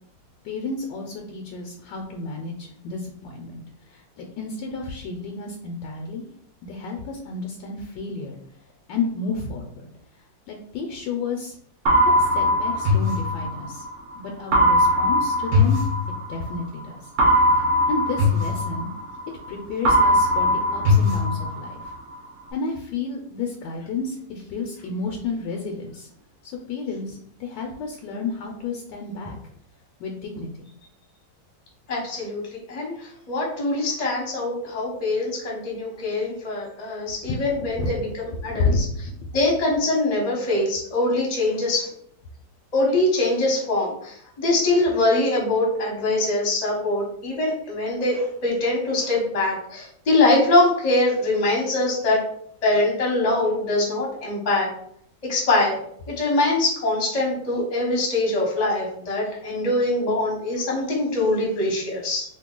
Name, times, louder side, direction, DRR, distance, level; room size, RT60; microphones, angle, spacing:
voice 1, 0.4-6.3 6.6-8.4 8.9-9.9 10.5-11.6 12.0-13.8 14.1-15.8 16.3-17.0 17.3-18.9 19.5-21.9 22.5-26.1 26.4-29.4 30.0-30.7 37.3-37.9 38.3-39.3, left 3 dB, 75° left, 1 dB, 1.2 m, -31 dB
sound 1, 11.9-13.9 14.5-16.6 17.2-19.5 19.8-21.9, left 1 dB, 60° right, 0.8 m, -20 dB
voice 2, 31.9-32.4 32.7-32.9 33.3-38.1 38.4-38.9 39.3-41.9 42.7-52.2 52.6-54.7 55.2-55.8 56.1-62.2, left 2 dB, 30° left, -3 dB, 0.8 m, -23 dB
2.9 x 2.7 x 3.7 m, 0.67 s
omnidirectional pair, 2.0 m